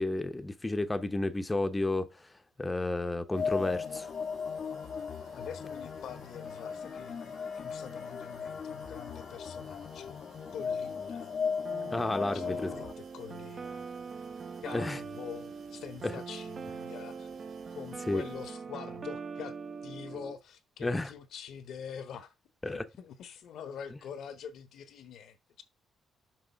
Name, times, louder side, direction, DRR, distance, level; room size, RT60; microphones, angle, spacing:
voice 1, 0.0-2.3 2.6-4.1 11.9-12.7 14.7-15.0 16.0-16.1 18.1-18.2 20.8-21.1 22.6-22.8, left 2 dB, 15° left, 0.7 m, -31 dB
sound 1, 3.3-12.9, left 6 dB, 50° left, 0.6 m, -37 dB
sound 2, 3.3-18.5, right 6 dB, 80° right, 2.4 m, -58 dB
voice 2, 5.3-10.2 10.5-11.3 12.3-13.8 14.6-17.3 17.7-19.6 19.8-22.3 22.7-25.6, left 7 dB, 75° left, 1.1 m, -45 dB
sound 3, 11.6-20.4, right 5 dB, 40° right, 0.7 m, -42 dB
6.2 x 4.8 x 4.5 m
cardioid pair, 90°, 0 cm